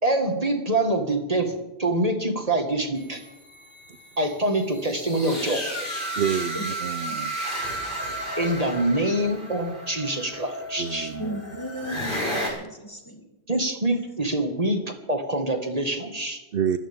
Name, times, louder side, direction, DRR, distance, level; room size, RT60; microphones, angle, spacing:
voice 1, 0.0-3.2 4.2-5.9 8.4-11.1 13.5-16.4, right 1 dB, 35° right, 4 dB, 1.9 m, -25 dB
sound 1, 3.0-12.5, right 1 dB, 50° left, 4.7 m, -33 dB
voice 2, 6.2-7.4 10.8-11.4 16.5-16.8, right 8 dB, 60° right, 11 dB, 0.8 m, -28 dB
voice 3, 11.2-13.2, equal, 20° left, 1 dB, 2.7 m, -36 dB
24.5 x 13.5 x 3.6 m, 1.0 s
omnidirectional pair, 1.1 m